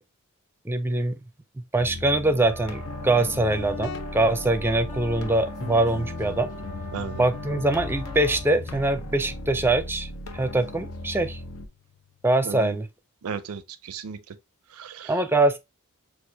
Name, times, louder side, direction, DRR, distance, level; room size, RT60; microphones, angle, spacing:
voice 1, 0.6-1.2 1.6-6.5 7.2-11.4 12.2-12.9 15.1-15.6, right 2 dB, 10° right, 0.5 m, -23 dB
sound 1, 1.8-11.7, left 1 dB, 80° left, 0.8 m, -38 dB
sound 2, 2.3-8.5, right 4 dB, 35° left, 1.1 m, -44 dB
Guitar, 2.9-12.3, left 5 dB, 60° left, 0.4 m, -41 dB
voice 2, 6.9-7.3 12.4-12.8 13.2-14.2 14.7-15.1, right 6 dB, 75° right, 0.5 m, -35 dB
6.3 x 2.5 x 2.7 m
head